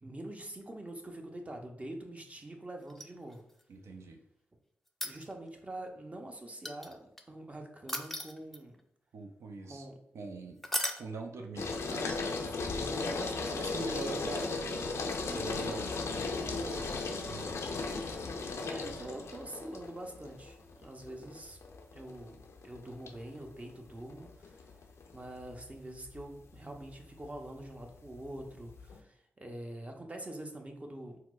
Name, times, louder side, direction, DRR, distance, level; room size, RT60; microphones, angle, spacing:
voice 1, 0.0-3.4 5.0-8.8 9.7-10.0 12.2-14.1 14.4-15.0 18.6-21.6 21.9-24.7 25.1-31.2, right 1 dB, 30° right, 3 dB, 0.7 m, -45 dB
sound 1, 2.9-3.6 4.9-5.6 6.6-7.2 7.9-8.8 10.6-11.1 13.3-13.4, equal, 5° left, 0.4 m, -36 dB
voice 2, 3.7-4.2 9.1-9.9 10.1-10.6 11.0-12.4 13.6-17.0 17.2-17.6, right 3 dB, 70° right, 3 dB, 0.4 m, -43 dB
sound 2, 11.6-29.0, left 3 dB, 70° left, 0.4 m, -37 dB
4.3 x 2.0 x 2.4 m, 0.73 s
supercardioid pair, 40°, 5 cm